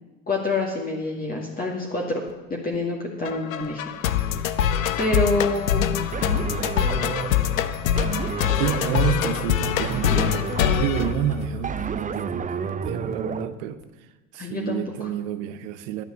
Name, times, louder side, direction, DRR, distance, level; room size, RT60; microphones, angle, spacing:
voice 1, 0.3-2.2 2.5-3.9 5.0-5.9 14.4-15.1, left 2 dB, 20° left, -2 dB, 2.1 m, -26 dB
sound 1, 3.2-11.8, left 10 dB, 80° left, 0.7 m, -24 dB
sound 2, 6.1-13.5, right 6 dB, 20° right, 0.7 m, -31 dB
voice 2, 8.6-10.5 10.8-13.8 14.3-16.0, right 11 dB, 65° right, 12 dB, 1.1 m, -29 dB
12.0 x 9.1 x 6.4 m, 1.1 s
hypercardioid pair, 75°, 39 cm